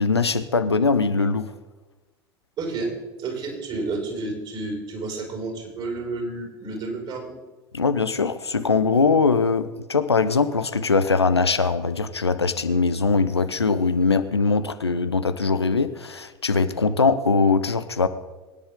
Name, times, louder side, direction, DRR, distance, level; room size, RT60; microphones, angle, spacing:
voice 1, 0.0-1.5 7.7-18.1, left 4 dB, 85° left, 11 dB, 0.7 m, -21 dB
voice 2, 2.6-2.9 3.2-7.4, right 3 dB, 40° right, 1 dB, 5.4 m, -30 dB
22.0 x 10.0 x 3.7 m, 1.2 s
figure-of-eight pair, 70°, 13 cm